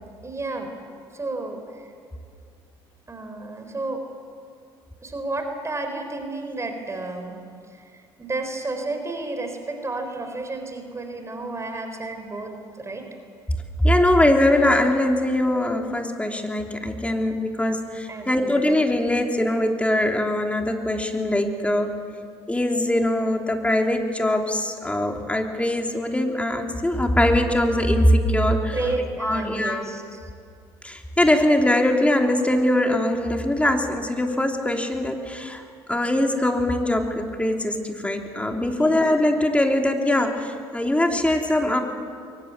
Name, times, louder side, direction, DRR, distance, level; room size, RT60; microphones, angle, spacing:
voice 1, 0.2-0.7 1.1-1.9 3.1-4.0 5.0-7.4 7.7-13.1 18.1-18.6 28.7-30.2 38.6-39.0, right 2 dB, 25° right, 5 dB, 3.9 m, -32 dB
voice 2, 13.8-21.9 22.5-28.8 29.2-29.8 30.8-35.6 35.9-41.8, left 1 dB, 10° left, 3 dB, 3.2 m, -22 dB
22.5 x 19.5 x 8.3 m, 2.3 s
hypercardioid pair, 65°, 12 cm